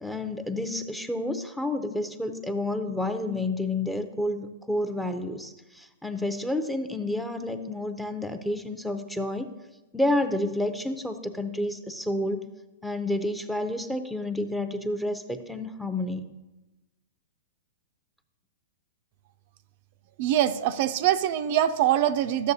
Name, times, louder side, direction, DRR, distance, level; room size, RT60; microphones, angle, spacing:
voice 1, 0.0-9.5 9.9-12.5 12.8-16.3, left 1 dB, ahead, 8 dB, 0.5 m, -30 dB
voice 2, 20.2-22.5, right 11 dB, 50° right, 10 dB, 0.4 m, -23 dB
12.0 x 6.6 x 2.7 m, 1.1 s
hypercardioid pair, 140°, 0 cm